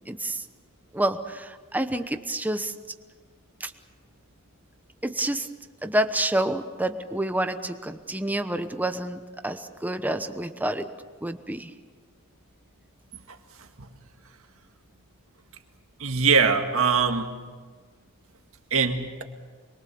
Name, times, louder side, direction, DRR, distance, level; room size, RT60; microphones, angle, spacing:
voice 1, 0.1-0.4 0.9-2.7 3.6-3.7 5.0-5.5 5.8-10.9 11.2-11.7, right 1 dB, 5° right, 8 dB, 1.0 m, -28 dB
voice 2, 13.3-13.9 16.0-17.3 18.7-19.2, right 5 dB, 65° right, 5 dB, 2.0 m, -23 dB
25.5 x 23.0 x 7.1 m, 1.5 s
head